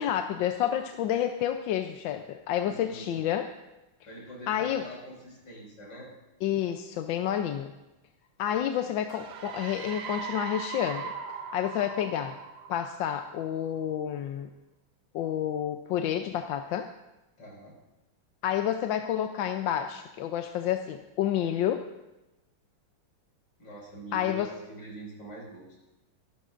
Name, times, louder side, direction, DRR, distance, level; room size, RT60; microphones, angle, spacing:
voice 1, 0.0-3.5 4.5-4.8 6.4-7.7 8.4-11.1 11.5-12.4 12.7-14.5 15.1-16.9 18.4-21.8 24.1-24.5, left 10 dB, 75° left, 6 dB, 1.3 m, -29 dB
voice 2, 2.6-3.2 4.0-6.1 17.4-17.8 23.6-25.6, right 1 dB, 55° left, -3 dB, 5.7 m, -44 dB
sound 1, 9.1-13.7, right 6 dB, 60° right, 1.4 m, -39 dB
24.5 x 12.0 x 2.5 m, 1.0 s
omnidirectional pair, 2.3 m